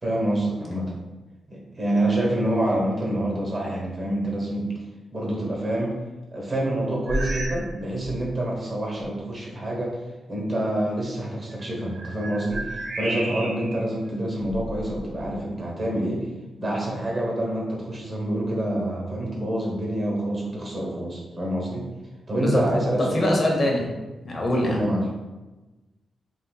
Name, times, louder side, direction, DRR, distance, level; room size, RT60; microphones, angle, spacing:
voice 1, 0.0-1.0 1.5-4.7 5.1-5.9 6.3-10.0 10.3-16.3 16.6-21.9 22.3-23.4 24.6-25.1, right 1 dB, 40° right, -2 dB, 1.0 m, -27 dB
sound 1, 7.1-7.7 8.0-8.3 9.0-9.1 11.5-13.8 14.4-15.4, right 1 dB, 60° right, 0.5 m, -32 dB
voice 2, 23.1-23.9 24.2-24.8, left 1 dB, 50° left, -1 dB, 0.8 m, -23 dB
3.5 x 2.7 x 2.3 m, 1.1 s
cardioid pair, 75°, 0 cm